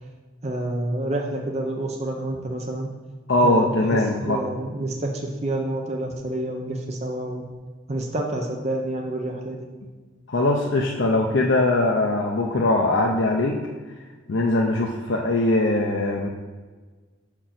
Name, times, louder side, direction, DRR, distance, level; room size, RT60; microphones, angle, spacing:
voice 1, 0.4-2.9 3.4-7.5 7.9-9.7, right 1 dB, 35° right, 0 dB, 0.7 m, -28 dB
voice 2, 3.3-4.4 10.3-13.6 14.3-16.3, left 2 dB, 60° left, 0 dB, 0.6 m, -21 dB
6.4 x 4.5 x 5.8 m, 1.4 s
head